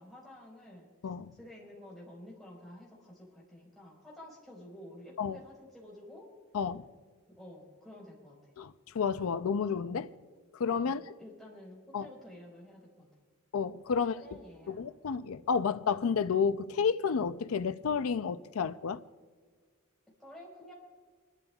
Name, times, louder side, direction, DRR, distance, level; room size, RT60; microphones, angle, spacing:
voice 1, 0.0-0.9 1.3-6.3 7.3-8.4 10.8-13.1 14.2-14.8 20.2-20.7, left 1 dB, ahead, 4.6 m, -51 dB
voice 2, 8.6-10.1 10.6-11.1 11.9-12.1 13.5-14.2 14.7-19.0, left 6 dB, 85° left, 0.5 m, -31 dB
28.5 x 12.5 x 2.4 m
head